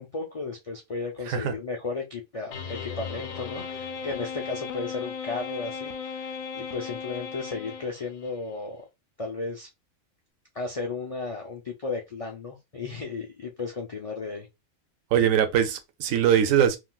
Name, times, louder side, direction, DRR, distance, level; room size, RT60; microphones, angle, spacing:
voice 1, 0.0-8.9 9.2-9.7 10.5-14.5, left 3 dB, 60° left, 0.3 m, -34 dB
sound 1, 2.5-8.3, left 6 dB, 85° left, 1.0 m, -36 dB
voice 2, 15.1-16.8, right 9 dB, 80° right, 1.0 m, -22 dB
3.7 x 2.4 x 2.3 m
omnidirectional pair, 1.4 m